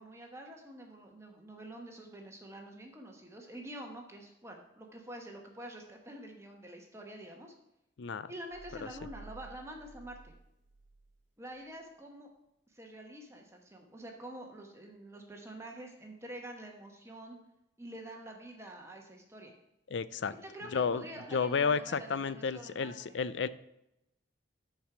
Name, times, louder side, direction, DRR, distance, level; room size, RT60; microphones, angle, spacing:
voice 1, 0.0-7.5 8.3-10.3 11.4-12.3 12.7-17.4 17.8-19.5 20.3-22.9, right 1 dB, 15° right, 2 dB, 1.1 m, -47 dB
voice 2, 8.0-8.3 8.8-8.9 19.9-20.3 20.7-21.0 21.3-23.5, left 5 dB, 70° left, 15 dB, 0.4 m, -31 dB
sound 1, 8.5-11.2, right 3 dB, 75° right, 0.8 m, -53 dB
10.5 x 4.7 x 5.9 m, 0.86 s
head